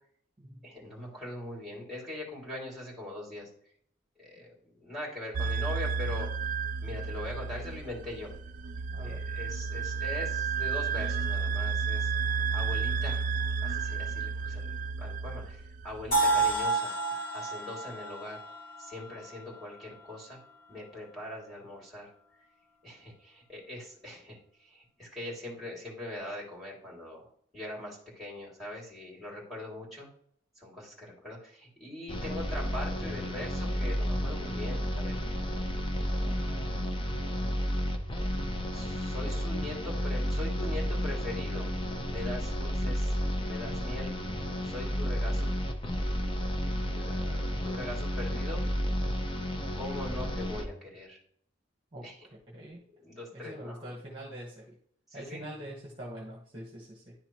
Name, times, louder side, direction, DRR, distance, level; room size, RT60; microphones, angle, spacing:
voice 1, 0.6-3.5 4.2-6.3 6.8-8.3 9.0-12.1 12.5-13.2 13.6-16.9 17.3-18.4 18.8-20.4 20.7-22.1 22.8-27.3 27.5-30.1 30.6-35.2 36.2-36.9 38.7-41.7 42.1-43.1 43.5-44.1 44.6-45.5 46.9-48.6 49.7-51.2 52.0-52.3 52.5-52.7 53.0-53.9 55.1-55.4, left 1 dB, ahead, -3 dB, 2.6 m, -41 dB
sound 1, 5.3-16.6, right 5 dB, 40° right, 0.4 m, -32 dB
voice 2, 8.9-9.2 51.9-52.1 52.5-52.8 53.3-54.6 55.1-57.1, right 1 dB, 25° right, -2 dB, 1.2 m, -43 dB
sound 2, 16.1-20.0, right 3 dB, 45° left, 2.4 m, -30 dB
sound 3, 32.1-50.7, equal, 25° left, 0.7 m, -32 dB
11.0 x 4.0 x 3.0 m, 0.64 s
head